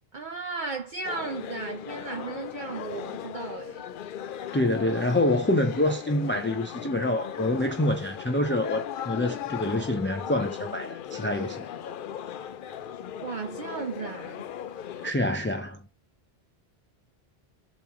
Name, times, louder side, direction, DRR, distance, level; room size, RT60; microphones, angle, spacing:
voice 1, 0.1-3.8 13.2-14.5, right 4 dB, 55° right, 0.8 m, -35 dB
sound 1, 1.0-15.1, left 9 dB, 60° left, 0.6 m, -37 dB
voice 2, 4.5-11.7 15.0-15.8, left 1 dB, 20° left, 0.3 m, -26 dB
7.1 x 3.1 x 5.8 m
omnidirectional pair, 1.1 m